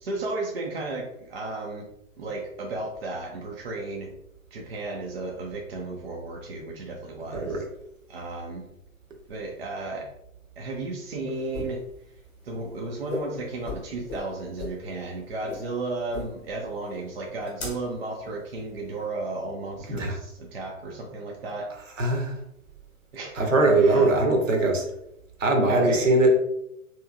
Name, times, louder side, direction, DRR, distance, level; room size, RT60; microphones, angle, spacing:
voice 1, 0.0-1.9 2.2-4.1 4.5-7.6 8.1-8.7 9.3-10.1 10.6-11.8 12.4-21.7 23.1-23.5 23.8-24.1 25.7-26.1, right 2 dB, 45° right, 0 dB, 0.5 m, -34 dB
voice 2, 7.3-7.6 19.9-20.2 22.0-22.4 23.4-24.8 25.4-26.4, right 2 dB, 65° right, 2 dB, 0.9 m, -21 dB
sound 1, 11.3-19.1, left 2 dB, 20° left, 0.8 m, -39 dB
3.0 x 2.9 x 2.3 m, 0.80 s
figure-of-eight pair, 120°, 42 cm